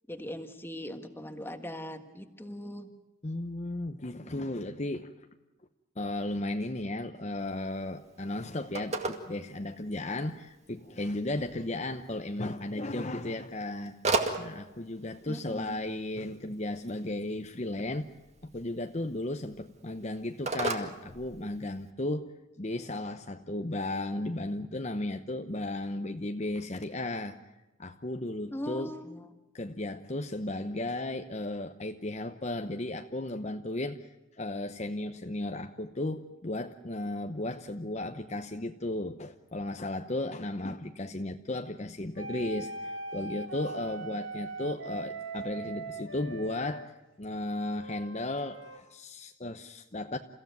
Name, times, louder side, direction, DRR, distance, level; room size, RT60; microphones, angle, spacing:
voice 1, 0.1-2.9 15.3-15.8 28.5-29.3, equal, 10° left, 7 dB, 1.5 m, -40 dB
voice 2, 3.2-5.1 6.0-14.0 14.4-18.1 18.4-27.4 27.8-28.9 29.5-34.1 34.3-50.2, left 1 dB, 35° left, 6 dB, 0.9 m, -35 dB
Telephone, 7.4-21.9, right 3 dB, 35° right, 2.1 m, -39 dB
sound 1, 42.2-46.9 47.5-48.8, right 3 dB, 65° right, 2.3 m, -40 dB
29.0 x 15.5 x 9.4 m, 1.1 s
head